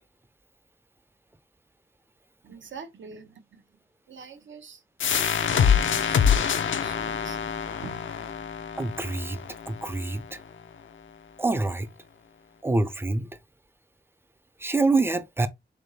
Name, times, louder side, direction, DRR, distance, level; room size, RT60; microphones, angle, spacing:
voice 1, 2.4-3.6 4.1-8.3, right 5 dB, 80° right, 0.7 m, -46 dB
sound 1, 5.0-10.4, left 7 dB, 85° left, 0.5 m, -25 dB
voice 2, 8.8-9.4 9.7-10.4 11.4-11.9 12.6-13.3 14.6-15.5, right 3 dB, 10° right, 0.4 m, -26 dB
3.9 x 3.4 x 2.7 m
wide cardioid pair, 130°, 19 cm